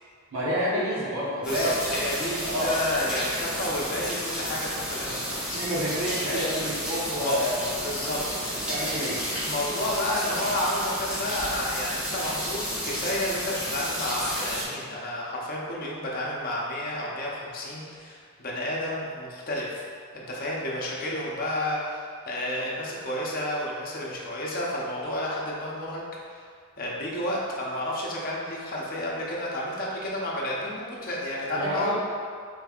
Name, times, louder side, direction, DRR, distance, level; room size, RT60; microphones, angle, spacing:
voice 1, 0.3-1.7 2.4-2.7 5.5-7.7 8.2-8.3 8.7-9.2 31.5-31.9, equal, 65° right, -7 dB, 0.9 m, -29 dB
voice 2, 1.4-5.6 6.3-6.5 7.2-7.4 7.8-8.6 9.4-19.8 20.1-26.0 26.3-26.4 26.8-31.9, left 1 dB, 40° left, -4 dB, 0.7 m, -31 dB
sound 1, 1.4-14.6, equal, 5° right, 0.9 m, -32 dB
5.2 x 3.3 x 2.4 m, 2.1 s
head